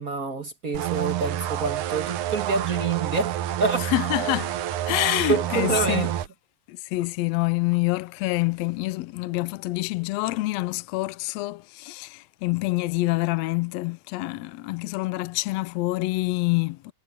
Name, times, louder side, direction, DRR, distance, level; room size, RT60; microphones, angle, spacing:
voice 1, 0.0-3.9 5.3-6.2, right 4 dB, 40° right, 1.5 m, -27 dB
sound 1, 0.7-6.3, right 12 dB, 80° right, 2.5 m, -28 dB
voice 2, 3.8-4.5 4.8-6.1 6.7-16.9, left 20 dB, 80° left, 1.6 m, -26 dB
omnidirectional pair, 3.6 m